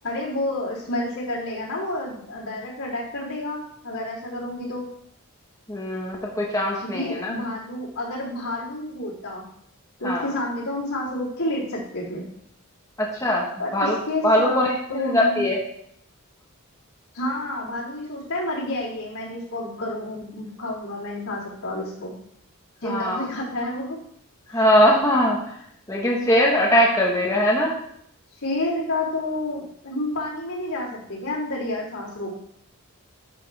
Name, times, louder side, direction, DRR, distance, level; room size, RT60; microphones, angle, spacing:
voice 1, 0.0-4.9 6.8-9.4 10.0-12.2 13.6-15.5 17.1-22.1 22.8-24.0 24.5-24.6 28.4-32.4, left 1 dB, 80° left, -7 dB, 3.5 m, -29 dB
voice 2, 5.7-7.3 10.0-10.3 13.0-13.9 14.2-15.6 22.8-23.2 24.5-25.4 25.9-27.7, equal, 15° left, -3 dB, 1.3 m, -21 dB
11.0 x 6.1 x 3.5 m, 0.69 s
head